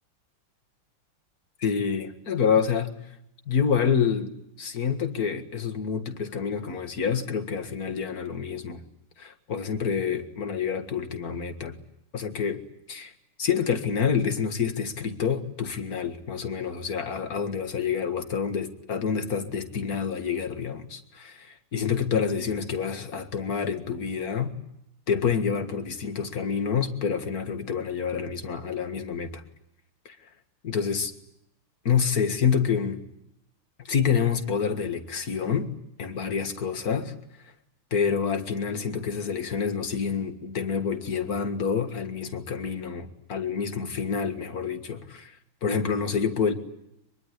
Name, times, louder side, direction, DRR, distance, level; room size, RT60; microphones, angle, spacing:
voice 1, 1.6-2.9 3.5-8.8 9.2-11.8 12.1-12.6 12.9-13.1 13.4-24.6 25.1-29.4 30.1-30.3 30.6-31.1 31.8-33.0 33.8-35.7 36.0-37.1 37.9-46.5, left 6 dB, 45° left, 8 dB, 2.2 m, -28 dB
24.0 x 22.5 x 9.9 m, 0.80 s
omnidirectional pair, 2.4 m